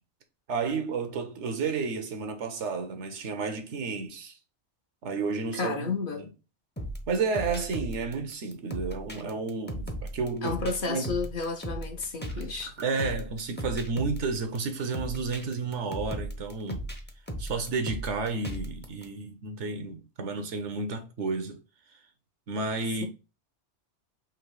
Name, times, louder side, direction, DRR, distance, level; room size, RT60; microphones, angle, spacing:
voice 1, 0.5-4.4 5.0-6.3 7.1-11.2 12.3-16.9 17.4-21.6 22.5-23.1, right 4 dB, 75° right, 1.1 m, -32 dB
voice 2, 5.6-6.3 10.4-12.7, left 4 dB, 50° left, 0.9 m, -32 dB
sound 1, 6.8-19.0, equal, 10° left, 0.6 m, -37 dB
3.8 x 2.9 x 4.6 m
omnidirectional pair, 1.2 m